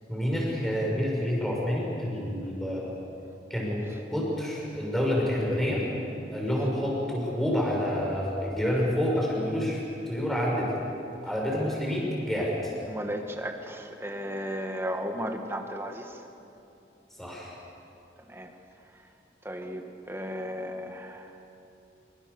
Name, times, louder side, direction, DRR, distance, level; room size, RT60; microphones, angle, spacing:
voice 1, 0.1-2.9 3.5-5.8 6.3-9.8 10.1-10.7 11.2-12.7 17.2-17.5, equal, ahead, -3 dB, 6.6 m, -28 dB
voice 2, 12.9-16.2 18.3-18.5 19.5-21.3, equal, 15° right, 4 dB, 1.7 m, -35 dB
26.5 x 25.5 x 7.1 m, 2.8 s
head